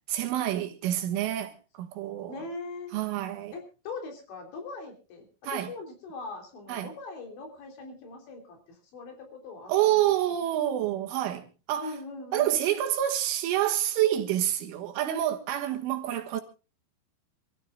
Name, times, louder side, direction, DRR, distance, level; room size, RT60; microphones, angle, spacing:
voice 1, 0.1-2.4 2.9-3.5 5.4-5.7 6.7-6.9 9.7-12.0 12.3-16.4, right 12 dB, 80° right, 3.9 m, -28 dB
voice 2, 2.3-3.0 3.5-10.0 10.7-10.9 11.8-12.6, left 3 dB, 65° left, 5.6 m, -41 dB
27.0 x 14.0 x 2.4 m
omnidirectional pair, 5.7 m